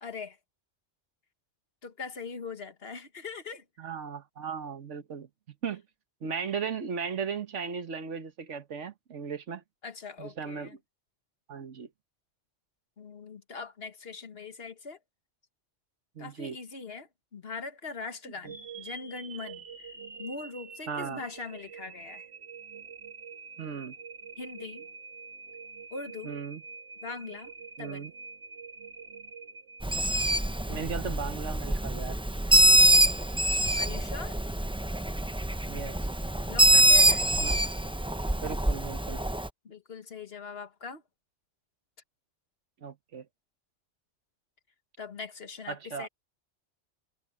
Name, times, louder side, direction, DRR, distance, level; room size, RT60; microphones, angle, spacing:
voice 1, 0.0-0.4 1.8-3.6 9.8-10.8 13.0-15.0 16.2-19.9 20.2-22.3 24.4-24.9 25.9-26.4 27.0-27.5 27.8-28.1 33.8-34.4 36.5-37.3 39.7-41.0 45.0-46.1, left 4 dB, 60° left, 1.6 m, -41 dB
voice 2, 3.8-5.3 5.6-5.8 6.2-9.6 10.2-10.8 11.5-11.9 16.1-16.6 18.4-18.5 20.9-21.2 23.6-23.9 26.2-26.6 27.8-28.1 30.7-32.2 35.7-36.1 37.4-37.6 38.4-39.2 42.8-43.3 45.7-46.1, right 6 dB, 85° right, 1.6 m, -36 dB
sound 1, 18.4-30.5, right 5 dB, 60° right, 1.9 m, -46 dB
Bird, 29.8-39.5, right 1 dB, 10° right, 0.3 m, -24 dB
omnidirectional pair, 1.2 m